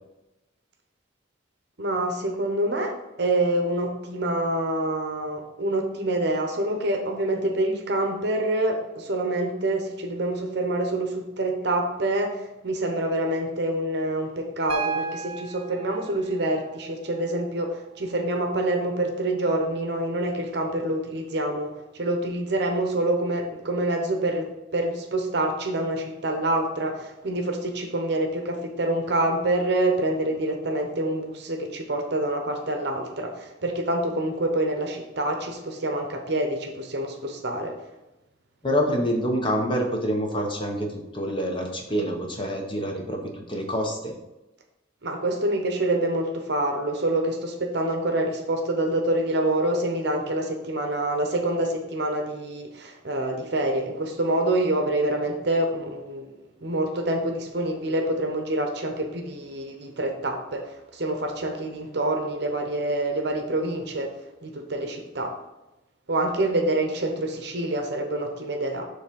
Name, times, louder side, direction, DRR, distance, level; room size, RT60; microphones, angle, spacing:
voice 1, 1.8-37.7 45.0-56.3 56.6-64.1 64.4-65.3 66.1-68.8, right 1 dB, 55° right, 3 dB, 0.9 m, -26 dB
Piano, 14.7-18.7 20.3-20.4, right 6 dB, 30° right, 0.5 m, -36 dB
voice 2, 38.6-44.1, equal, 25° left, 2 dB, 0.9 m, -27 dB
7.1 x 3.3 x 5.2 m, 0.99 s
head